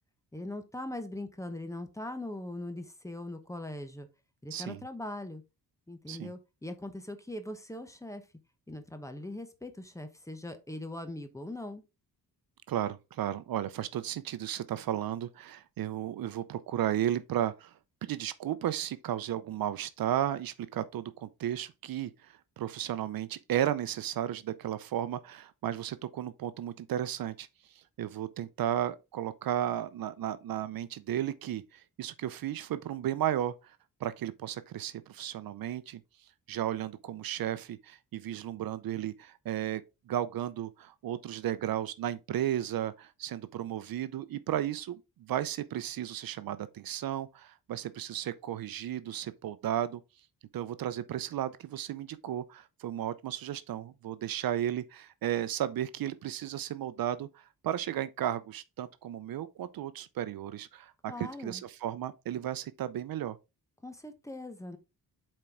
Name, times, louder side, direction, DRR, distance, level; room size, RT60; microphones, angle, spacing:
voice 1, 0.3-4.1 4.4-5.4 5.9-8.2 8.7-11.8 61.1-61.6 63.8-64.8, left 1 dB, 10° left, 1.0 m, -41 dB
voice 2, 4.5-4.8 6.1-6.3 12.7-27.5 27.7-36.0 36.5-50.0 50.5-63.4, right 11 dB, 70° right, 0.7 m, -34 dB
7.5 x 4.4 x 3.7 m
cardioid pair, 120°, 36 cm